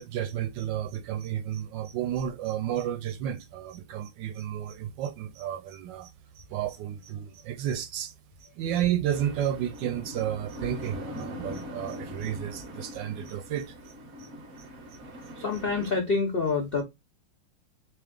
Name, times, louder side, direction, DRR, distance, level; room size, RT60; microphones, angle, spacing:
voice 1, 0.0-8.1 8.5-13.7 14.2-14.3, right 10 dB, 75° right, 1.2 m, -32 dB
sound 1, 9.1-16.0, equal, 45° right, 0.9 m, -41 dB
voice 2, 15.4-16.8, left 4 dB, 65° left, 0.5 m, -27 dB
3.4 x 3.2 x 3.6 m
omnidirectional pair, 2.2 m